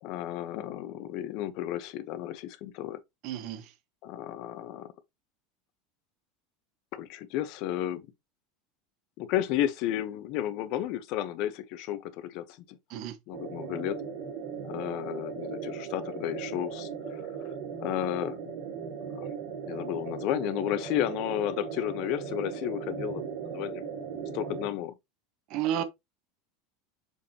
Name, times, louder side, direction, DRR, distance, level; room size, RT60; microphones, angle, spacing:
voice 1, 0.0-3.0 4.0-4.9 6.9-8.1 9.2-12.8 13.3-14.0 14.6-17.2 17.8-18.4 19.1-19.3 19.7-23.2 23.5-23.8 24.3-24.9 25.8-25.9, left 12 dB, 55° left, 0.9 m, -32 dB
voice 2, 3.2-3.7 12.9-13.2 25.5-25.8, right 11 dB, 50° right, 1.3 m, -31 dB
sound 1, 13.3-24.7, right 6 dB, 75° right, 2.4 m, -38 dB
6.4 x 5.4 x 2.9 m
supercardioid pair, 145°, 0 cm